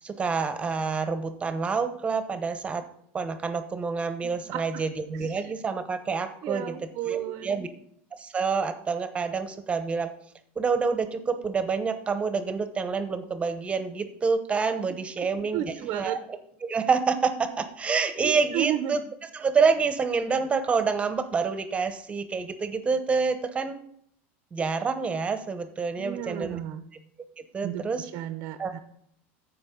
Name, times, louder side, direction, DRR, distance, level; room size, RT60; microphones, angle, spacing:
voice 1, 0.0-2.8 3.1-6.8 7.0-7.7 8.2-10.1 10.6-16.2 16.6-19.0 19.3-23.8 24.5-26.6 27.5-28.1 28.6-28.7, right 5 dB, 20° right, 9 dB, 0.8 m, -27 dB
voice 2, 4.2-4.8 5.1-5.5 6.4-7.7 14.9-16.2 18.2-19.0 26.0-26.8 27.6-28.8, right 12 dB, 50° right, 10 dB, 0.6 m, -33 dB
14.0 x 4.8 x 3.7 m, 0.68 s
supercardioid pair, 130°, 7 cm